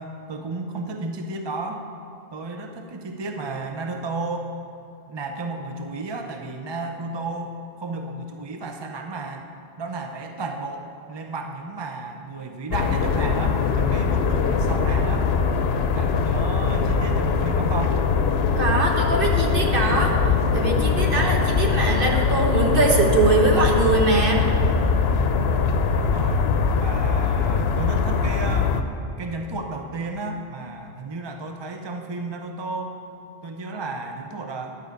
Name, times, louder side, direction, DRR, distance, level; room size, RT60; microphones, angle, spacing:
voice 1, 0.0-1.9 2.3-4.5 5.1-7.5 7.8-9.4 9.8-15.3 15.9-18.0 25.5-26.4 26.8-28.8 29.2-32.9 33.4-34.8, right 3 dB, 30° right, 4 dB, 0.6 m, -33 dB
sound 1, 12.7-28.8, left 5 dB, 75° left, 0.9 m, -22 dB
voice 2, 18.6-20.1 20.5-24.5, right 2 dB, 55° right, 0 dB, 1.5 m, -22 dB
10.5 x 5.5 x 8.0 m, 2.7 s
omnidirectional pair, 1.1 m